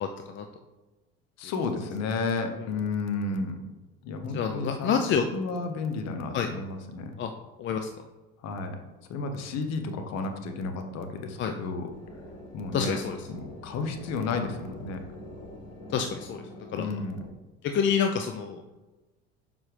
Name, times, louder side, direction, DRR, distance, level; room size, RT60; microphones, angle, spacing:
voice 1, 0.0-0.4 1.4-1.5 4.3-5.3 6.3-6.5 7.2-7.3 7.6-7.9 11.4-11.5 12.7-13.3 15.9-17.0 17.7-18.6, left 7 dB, 35° left, 6 dB, 0.6 m, -28 dB
voice 2, 1.4-3.6 4.0-5.1 5.3-7.2 8.4-8.8 9.1-11.9 12.5-13.0 13.3-15.0 16.7-17.2, left 3 dB, 55° left, 7 dB, 1.2 m, -32 dB
sound 1, 11.9-17.3, left 1 dB, 75° left, 1.5 m, -45 dB
7.1 x 5.4 x 3.4 m, 1.2 s
hypercardioid pair, 75°, 32 cm